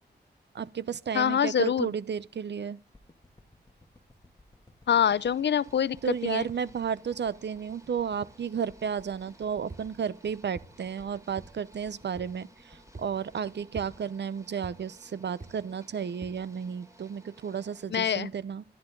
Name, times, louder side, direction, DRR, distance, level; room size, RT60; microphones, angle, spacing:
voice 1, 0.5-2.8 6.0-18.6, right 7 dB, 85° right, 0.8 m, -33 dB
voice 2, 1.1-1.9 4.9-6.5 17.9-18.3, left 8 dB, 90° left, 0.6 m, -25 dB
sound 1, 2.9-15.3 15.7-15.8, left 2 dB, 20° left, 2.5 m, -58 dB
sound 2, 5.1-17.9, right 2 dB, 15° right, 3.4 m, -58 dB
sound 3, 9.7-9.9 10.5-10.7 11.4-11.5 12.2-12.3 12.9-13.1 13.7-13.9 14.6-14.8 15.4-15.5 16.2-16.4, right 3 dB, 45° right, 2.2 m, -43 dB
25.0 x 11.0 x 3.9 m
wide cardioid pair, 90°, 18 cm